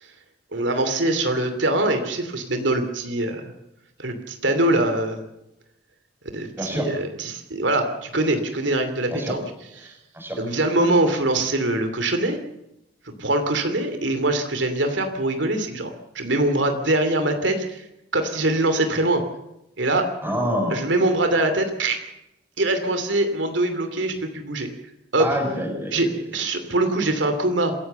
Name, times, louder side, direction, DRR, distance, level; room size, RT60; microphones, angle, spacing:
voice 1, 0.5-3.5 4.0-5.2 6.3-9.4 9.8-9.9 10.4-12.4 13.2-17.8 18.1-19.2 19.8-20.1 20.7-22.0 22.6-24.7 25.1-25.3 25.9-27.7, right 2 dB, 80° right, 7 dB, 2.9 m, -23 dB
voice 2, 6.6-6.9 9.1-9.4 9.8-10.4 20.2-20.8 25.2-25.9, equal, 10° right, 4 dB, 6.4 m, -26 dB
27.0 x 16.0 x 7.0 m, 0.86 s
head